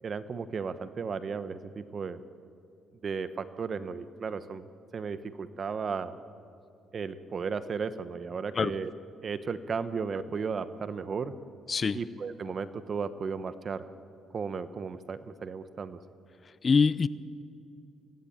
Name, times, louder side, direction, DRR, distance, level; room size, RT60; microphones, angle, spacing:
voice 1, 0.0-2.2 3.0-4.7 4.9-6.2 6.9-8.9 9.2-11.3 11.9-13.9 14.3-16.0, right 5 dB, 45° right, 12 dB, 1.1 m, -35 dB
voice 2, 11.7-12.0 16.6-17.1, left 5 dB, 40° left, 16 dB, 0.7 m, -24 dB
25.5 x 17.0 x 8.9 m, 2.6 s
cardioid pair, 90°, 0 cm